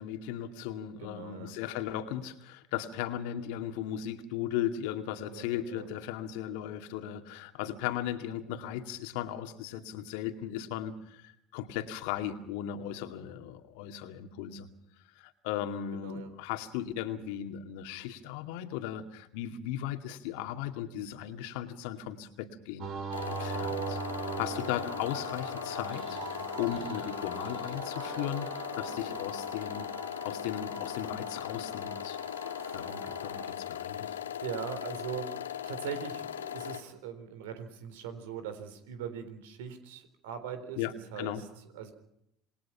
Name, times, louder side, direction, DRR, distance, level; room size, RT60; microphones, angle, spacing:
voice 1, 0.0-14.7 15.2-22.9 23.3-29.9 30.2-32.2 32.7-34.2 40.8-41.4, left 11 dB, 70° left, 7 dB, 2.3 m, -37 dB
voice 2, 1.0-1.5 5.3-5.9 15.9-16.3 26.4-26.8 32.5-32.8 34.4-35.3 35.6-40.8 41.1-41.4 41.7-41.9, right 8 dB, 75° right, 10 dB, 3.9 m, -41 dB
sound 1, 22.8-33.5, right 6 dB, 55° right, 5.2 m, -41 dB
sound 2, 23.1-36.8, left 10 dB, 85° left, 1.5 m, -39 dB
28.0 x 20.5 x 5.8 m, 0.76 s
hypercardioid pair, 70°, 0 cm